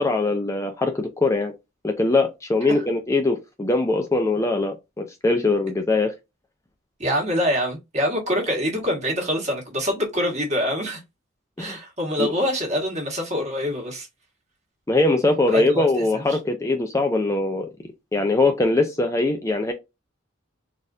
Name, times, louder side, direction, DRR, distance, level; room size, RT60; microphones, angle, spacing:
voice 1, 0.0-1.5 1.8-6.1 11.6-11.8 12.2-12.3 14.9-17.7 18.1-19.7, left 2 dB, 15° left, 0.4 m, -22 dB
voice 2, 7.0-11.0 11.6-14.1 15.5-15.8 16.1-16.2, equal, 35° right, 1.5 m, -25 dB
4.1 x 2.5 x 2.5 m
head